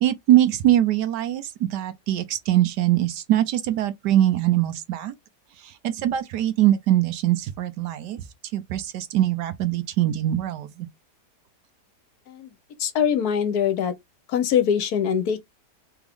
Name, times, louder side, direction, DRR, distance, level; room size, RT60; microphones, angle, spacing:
voice 1, 0.0-5.1 5.8-8.2 8.5-10.9, right 13 dB, 85° right, 1.3 m, -22 dB
voice 2, 12.8-13.9 14.3-15.4, left 8 dB, 70° left, 1.2 m, -23 dB
3.6 x 3.6 x 3.5 m
omnidirectional pair, 1.8 m